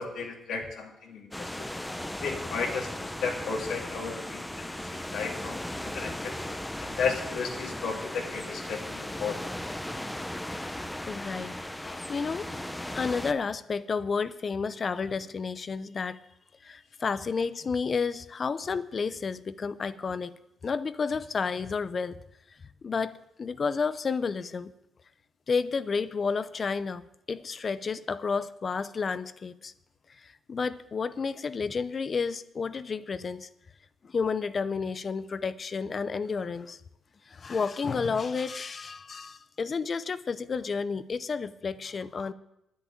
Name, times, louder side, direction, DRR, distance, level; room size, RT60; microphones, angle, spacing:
voice 1, 0.0-1.5 2.2-6.3 6.8-9.4, left 5 dB, 75° left, 1 dB, 2.3 m, -34 dB
sound 1, 1.3-13.3, left 1 dB, 5° left, 0.8 m, -37 dB
voice 2, 11.1-11.6 11.8-16.2 16.6-20.3 20.6-22.2 22.8-24.7 25.5-27.0 27.3-29.7 30.2-33.5 34.0-36.8 37.3-42.3, left 5 dB, 40° left, 15 dB, 0.6 m, -31 dB
10.0 x 8.1 x 8.9 m, 0.86 s
cardioid pair, 90°, 0 cm